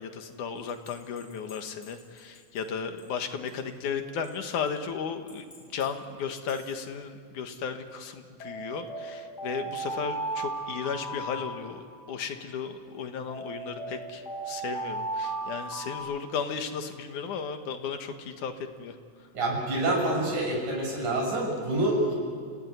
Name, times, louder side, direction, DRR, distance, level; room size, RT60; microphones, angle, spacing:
voice 1, 0.0-19.3, left 6 dB, 80° left, 6 dB, 3.0 m, -35 dB
sound 1, 0.7-2.6 3.0-3.1 3.5-3.6 4.2-4.7 5.3-5.8 6.3-6.7 8.4-12.2 13.3-16.0, right 2 dB, 30° left, 8.6 m, -36 dB
voice 2, 19.3-22.1, right 1 dB, 75° right, -1 dB, 8.3 m, -27 dB
29.5 x 17.0 x 9.7 m, 2.1 s
omnidirectional pair, 3.5 m